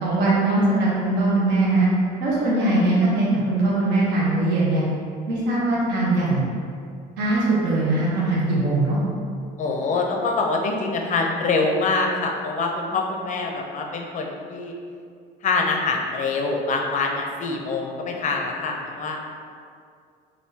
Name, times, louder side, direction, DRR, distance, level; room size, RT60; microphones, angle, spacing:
voice 1, 0.0-1.9 2.2-4.8 5.3-6.4 7.2-9.0, right 2 dB, 70° right, -6 dB, 0.9 m, -21 dB
voice 2, 9.6-14.7 15.4-19.2, left 3 dB, 45° left, 2 dB, 0.5 m, -25 dB
3.5 x 2.6 x 2.7 m, 2.3 s
cardioid pair, 105°, 19 cm